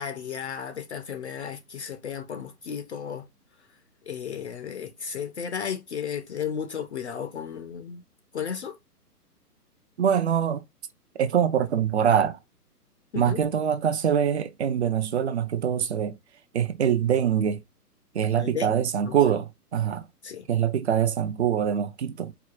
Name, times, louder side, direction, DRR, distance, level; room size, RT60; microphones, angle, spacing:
voice 1, 0.0-3.3 4.1-8.0 8.3-8.8 13.1-13.4 18.4-19.2 20.2-20.5, left 7 dB, 45° left, 0.5 m, -34 dB
voice 2, 10.0-10.6 11.2-12.4 13.1-16.1 16.5-17.6 18.1-20.0 20.5-22.3, right 8 dB, 45° right, 0.5 m, -24 dB
4.7 x 2.2 x 2.3 m
hypercardioid pair, 140°, 48 cm